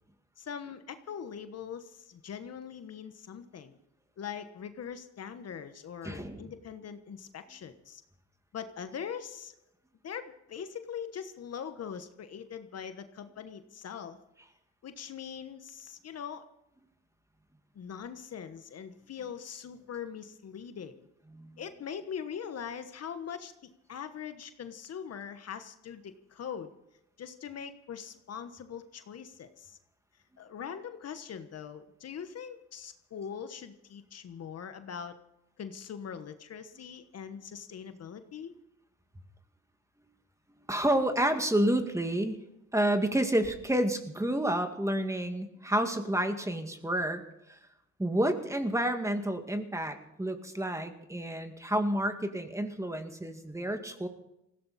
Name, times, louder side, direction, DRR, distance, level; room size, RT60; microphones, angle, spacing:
voice 1, 0.4-3.8 4.2-8.0 8.5-9.5 10.0-14.2 14.8-16.5 17.7-21.1 21.6-26.7 27.2-29.8 30.4-35.2 35.6-38.5, left 7 dB, 55° left, 10 dB, 1.2 m, -42 dB
voice 2, 6.0-6.5 21.3-21.5 40.7-42.4 42.7-47.2 47.5-47.6 48.0-54.1, right 1 dB, 10° right, 6 dB, 2.1 m, -29 dB
20.0 x 16.0 x 4.2 m, 0.85 s
cardioid pair, 90°, 30 cm